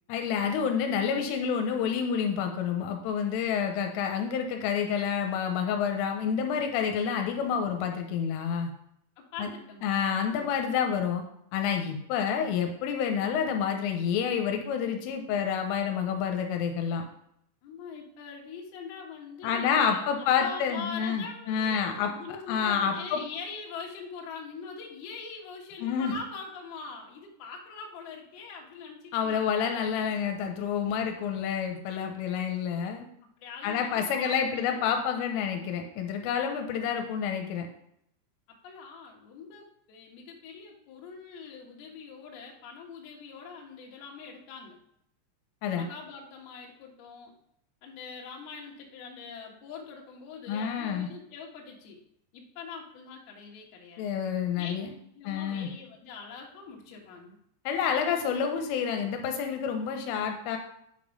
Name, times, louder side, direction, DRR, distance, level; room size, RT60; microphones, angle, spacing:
voice 1, 0.1-8.7 9.4-9.5 9.8-11.2 11.5-17.0 19.4-23.2 25.8-26.1 29.1-33.1 33.6-37.7 45.6-45.9 50.5-51.1 54.0-54.9 55.2-55.7 57.7-60.6, left 7 dB, 85° left, 4 dB, 3.3 m, -28 dB
voice 2, 9.2-10.5 17.6-29.5 33.4-34.8 38.6-44.8 45.7-47.3 47.8-52.0 52.3-54.1 54.6-54.7 55.1-57.4, left 5 dB, 65° left, 0 dB, 2.8 m, -43 dB
9.2 x 5.3 x 5.2 m, 0.75 s
omnidirectional pair, 5.7 m